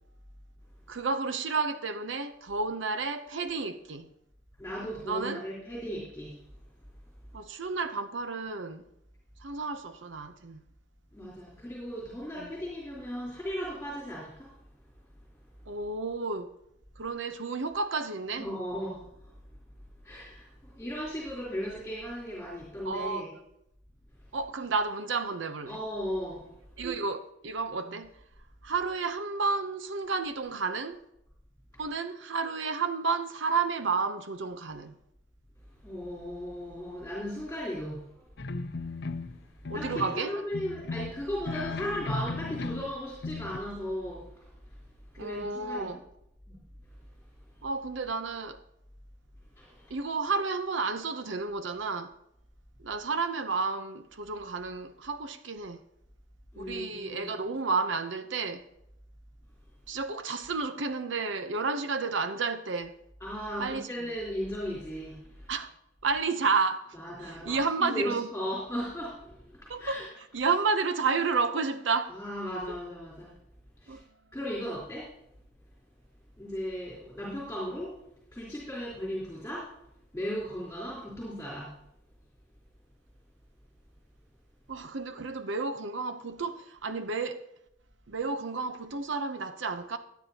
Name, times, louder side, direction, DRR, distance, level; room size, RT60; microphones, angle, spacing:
voice 1, 0.9-4.1 5.0-5.4 7.3-8.8 9.4-10.6 12.4-12.5 15.7-16.5 17.0-18.5 22.8-23.4 24.3-25.8 26.8-28.1 28.6-31.0 31.8-34.9 39.7-40.3 45.2-46.0 47.6-48.6 49.9-52.2 52.8-55.8 56.6-58.7 59.9-63.0 63.6-63.9 65.5-65.7 66.0-68.3 69.7-70.0 70.3-72.2 73.9-74.0 84.7-87.5 88.1-90.0, right 4 dB, 90° right, 0.8 m, -31 dB
voice 2, 4.6-6.4 11.1-14.7 18.4-19.4 20.0-23.3 24.3-24.4 25.7-26.8 35.7-38.3 38.8-39.0 39.4-46.0 46.5-47.7 49.6-49.9 56.5-57.4 63.2-65.5 66.9-70.1 72.1-73.3 73.8-74.0 74.3-75.1 76.4-78.0 78.3-79.7 80.1-81.7, equal, 10° left, 3.8 m, -37 dB
sound 1, 38.4-39.4 39.7-40.2 40.5-43.0 43.2-43.6, left 3 dB, 60° left, 0.6 m, -36 dB
19.5 x 9.3 x 2.9 m
head